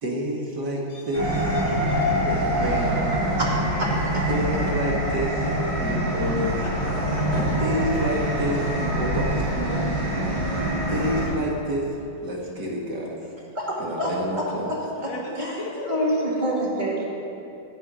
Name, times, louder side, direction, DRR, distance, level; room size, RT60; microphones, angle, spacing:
voice 1, 0.0-1.6 2.3-3.1 4.3-6.5 7.6-10.0 10.4-10.6 10.9-11.9 12.2-13.2 13.8-14.7, equal, 55° right, -2 dB, 2.4 m, -29 dB
voice 2, 0.9-2.1 2.6-2.7 6.6-7.9 15.0-16.2, left 2 dB, 70° left, -1 dB, 2.6 m, -38 dB
sound 1, 1.1-11.2, equal, 80° right, 5.1 m, -25 dB
voice 3, 3.8-4.3 13.5-15.6 15.9-17.1, equal, 20° right, -4 dB, 2.3 m, -27 dB
13.5 x 7.0 x 9.8 m, 2.7 s
omnidirectional pair, 2.2 m